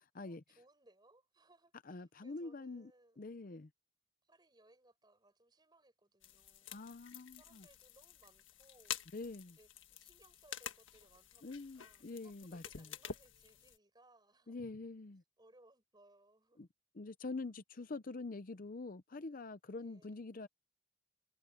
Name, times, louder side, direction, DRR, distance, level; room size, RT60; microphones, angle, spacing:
voice 1, 0.2-3.2 4.2-9.0 9.5-14.6 15.4-16.7 19.8-20.4, right 2 dB, 20° right, 6.4 m, -67 dB
voice 2, 1.9-2.9 3.2-3.7 6.7-7.6 9.1-9.6 11.4-12.6 14.5-15.2 16.6-16.7 17.0-20.5, left 3 dB, 45° left, 0.6 m, -45 dB
sound 1, 6.2-13.8, left 8 dB, 70° left, 1.6 m, -49 dB
head